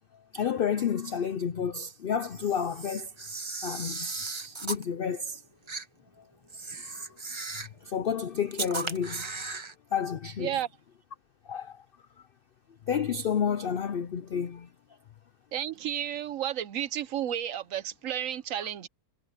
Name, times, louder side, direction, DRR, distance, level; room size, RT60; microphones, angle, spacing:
voice 1, 0.3-3.1 3.6-5.4 6.9-7.0 7.8-9.4 9.9-10.5 11.5-11.8 12.9-14.7, left 7 dB, 90° left, 0.4 m, -30 dB
Camera, 2.3-4.8 5.7-5.9 6.5-7.8 8.5-9.7, right 3 dB, 25° right, 0.7 m, -37 dB
voice 2, 15.5-18.9, right 10 dB, 65° right, 0.9 m, -32 dB
omnidirectional pair, 1.7 m